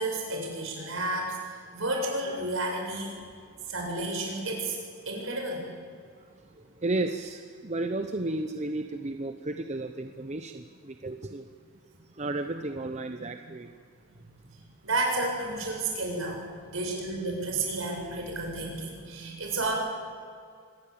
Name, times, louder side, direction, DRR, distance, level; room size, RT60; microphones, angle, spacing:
voice 1, 0.0-3.1 3.7-4.8 5.1-5.7 14.5-19.7, right 2 dB, 65° right, 1 dB, 7.7 m, -31 dB
voice 2, 6.8-11.4 12.2-13.7, right 2 dB, 35° right, 7 dB, 0.9 m, -33 dB
26.0 x 20.0 x 8.8 m, 2.3 s
head